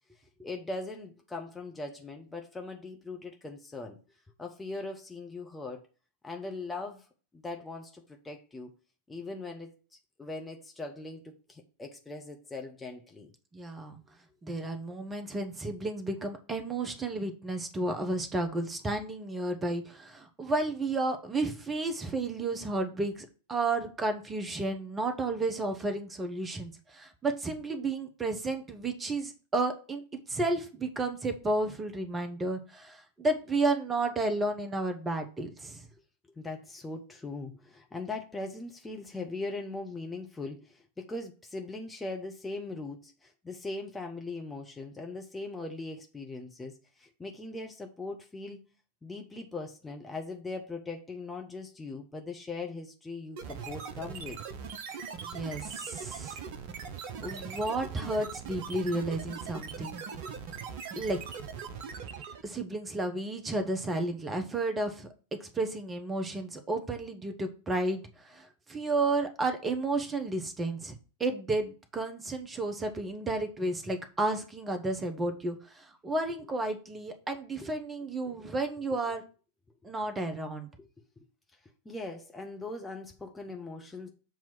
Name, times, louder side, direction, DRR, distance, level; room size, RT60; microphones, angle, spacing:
voice 1, 0.4-4.0 4.4-5.9 6.2-7.1 7.3-8.7 9.1-9.7 10.2-13.3 36.4-48.6 49.0-54.4 77.6-77.7 80.8-80.9 81.2-81.3 81.8-84.1, left 3 dB, 10° left, 0.9 m, -40 dB
voice 2, 13.5-14.0 14.4-30.0 30.3-35.9 55.2-56.4 57.2-60.0 61.0-61.2 62.4-65.1 65.4-70.9 71.2-79.2 79.8-80.7, right 2 dB, 15° right, 1.0 m, -32 dB
sound 1, 53.4-62.5, right 6 dB, 50° right, 0.7 m, -40 dB
7.2 x 3.0 x 5.9 m
figure-of-eight pair, 90°, 0 cm